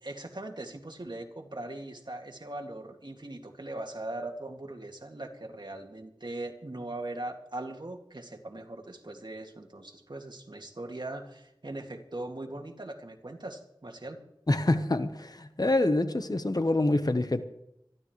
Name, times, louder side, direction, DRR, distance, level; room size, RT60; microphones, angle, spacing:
voice 1, 0.0-14.2, right 2 dB, 60° right, 2.2 m, -40 dB
voice 2, 14.5-17.4, left 2 dB, 45° left, 1.0 m, -26 dB
25.5 x 12.0 x 3.2 m
wide cardioid pair, 50°, 9 cm